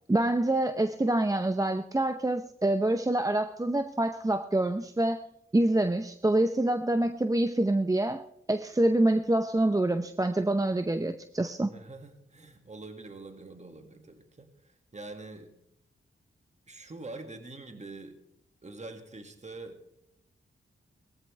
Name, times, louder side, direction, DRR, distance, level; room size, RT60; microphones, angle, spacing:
voice 1, 0.1-5.2 5.5-8.2 8.5-11.7, right 1 dB, 15° right, 9 dB, 0.7 m, -26 dB
voice 2, 11.7-14.5 14.9-15.6 16.7-18.2 18.6-19.8, right 2 dB, 35° right, 6 dB, 2.0 m, -44 dB
19.5 x 14.0 x 3.3 m, 0.75 s
cardioid pair, 60°, 21 cm